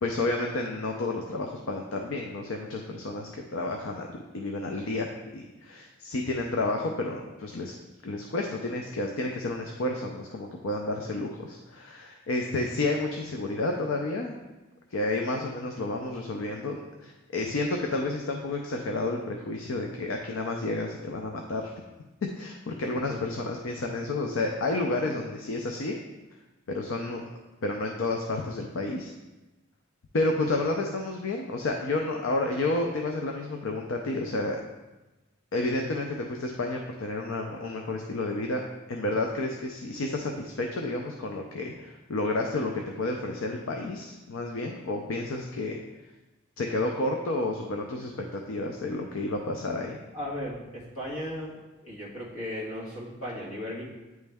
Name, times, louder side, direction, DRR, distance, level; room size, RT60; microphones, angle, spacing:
voice 1, 0.0-4.1 4.3-7.7 8.0-14.4 14.9-21.7 22.4-26.0 26.7-27.2 27.6-29.1 30.1-34.6 35.5-38.6 38.9-45.8 46.6-50.0, left 2 dB, 70° left, 2 dB, 0.5 m, -30 dB
voice 2, 50.1-51.6 51.8-53.8, left 1 dB, 85° left, -6 dB, 1.9 m, -36 dB
9.1 x 3.2 x 3.4 m, 1.1 s
head